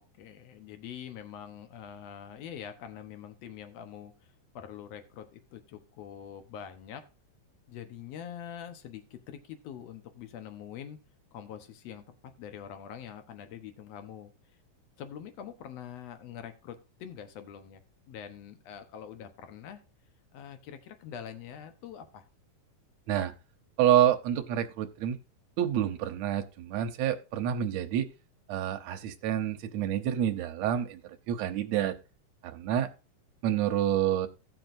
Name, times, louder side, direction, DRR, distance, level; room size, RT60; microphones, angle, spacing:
voice 1, 0.0-7.0 7.7-11.0 11.3-12.1 12.4-14.3 15.0-19.8 20.3-22.3, left 9 dB, 65° left, 1.7 m, -44 dB
voice 2, 23.8-25.2 25.6-28.1 28.5-31.0 31.3-32.0 32.4-32.9 33.4-34.3, right 10 dB, 70° right, 1.8 m, -28 dB
17.0 x 6.0 x 2.6 m
omnidirectional pair, 3.9 m